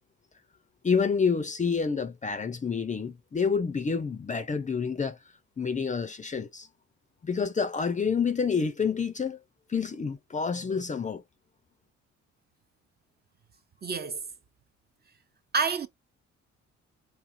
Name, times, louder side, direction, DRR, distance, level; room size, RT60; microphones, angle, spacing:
voice 1, 0.8-5.2 5.6-6.7 7.2-9.4 9.7-11.2, left 5 dB, 25° left, 0.5 m, -28 dB
voice 2, 13.8-14.3 15.5-15.9, right 5 dB, 35° right, 0.6 m, -28 dB
4.8 x 3.3 x 2.5 m
cardioid pair, 90°, 30 cm